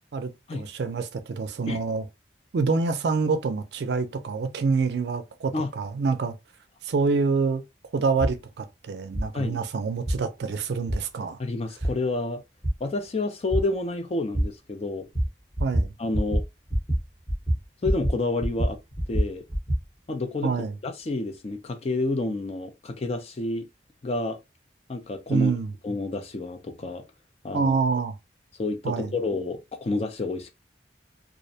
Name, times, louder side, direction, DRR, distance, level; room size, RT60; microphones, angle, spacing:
voice 1, 0.1-2.1 2.5-6.4 6.8-7.6 7.9-11.4 15.6-15.9 20.4-20.8 25.3-25.7 27.5-28.1 28.8-29.1, right 4 dB, 70° right, 0.4 m, -26 dB
sound 1, 8.2-8.3 9.1-9.3 10.1-10.2 10.9-11.0 11.8-11.9 12.6-12.7 13.5-13.6 14.3-14.4 15.1-15.3 15.6-15.9 16.1-16.4 16.7-17.0 17.3-18.2 18.4-19.8, equal, 20° left, 1.0 m, -24 dB
voice 2, 11.4-12.4 12.8-15.1 16.0-16.4 17.8-18.8 19.1-19.4 20.1-20.5 20.8-23.7 24.0-24.4 24.9-25.5 25.8-27.0 27.4-27.7 28.6-30.5, left 2 dB, 35° left, 0.4 m, -29 dB
2.5 x 2.0 x 2.6 m
head